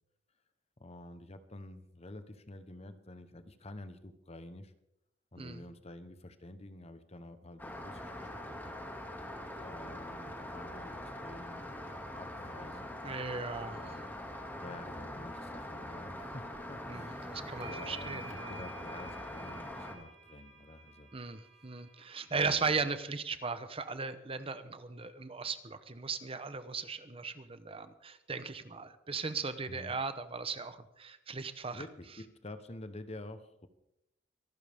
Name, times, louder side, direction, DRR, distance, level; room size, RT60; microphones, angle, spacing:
voice 1, 0.8-4.7 5.3-8.7 9.6-11.7 11.9-13.0 13.7-14.1 14.6-21.1 22.3-22.8 29.7-29.9 31.7-33.7, left 2 dB, 30° left, 10 dB, 1.0 m, -49 dB
Rain, 7.6-20.0, left 1 dB, 10° left, 2.2 m, -43 dB
voice 2, 13.0-13.9 16.9-18.6 21.1-31.8, right 4 dB, 30° right, 11 dB, 0.9 m, -37 dB
sound 1, 17.0-17.1 17.6-22.4, right 3 dB, 75° right, 2.5 m, -51 dB
25.5 x 12.0 x 3.6 m, 0.83 s
head